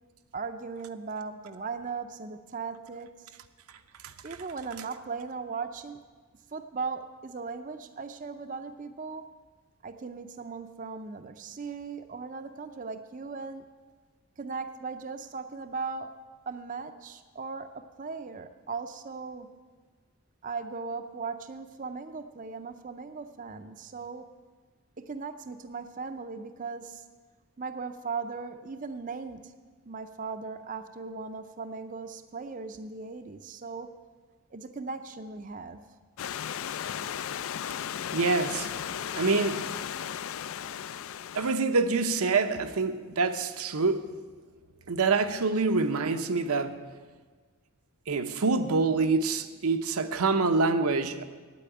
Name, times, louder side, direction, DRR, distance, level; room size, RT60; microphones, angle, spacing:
voice 1, 0.3-3.3 4.2-6.0 6.5-9.2 9.8-13.6 14.4-16.1 16.5-19.5 20.4-24.2 25.0-27.0 27.6-29.5 29.9-33.9 34.5-35.8, right 4 dB, 35° right, 9 dB, 0.5 m, -38 dB
Stream / Liquid, 36.2-41.5, left 9 dB, 70° left, 0.4 m, -35 dB
voice 2, 38.1-38.7 39.1-39.7 41.3-44.1 44.9-46.8 48.1-51.2, right 4 dB, 80° right, 9 dB, 0.8 m, -26 dB
9.2 x 8.4 x 8.9 m, 1.4 s
head